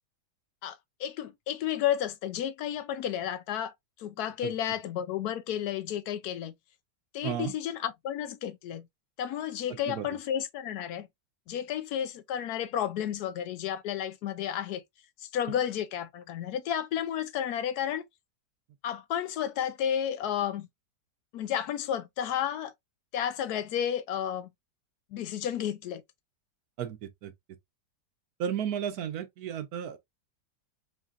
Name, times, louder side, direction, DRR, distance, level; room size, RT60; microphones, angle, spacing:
voice 1, 0.6-3.7 4.0-6.5 7.1-8.9 9.2-11.1 11.5-14.8 15.2-18.0 18.8-20.7 21.3-22.7 23.1-24.5 25.1-26.0, left 10 dB, 70° left, 1.0 m, -32 dB
voice 2, 7.2-7.5 9.9-10.1 26.8-27.3 28.4-30.0, right 9 dB, 70° right, 1.1 m, -33 dB
4.0 x 3.7 x 2.4 m
omnidirectional pair, 1.8 m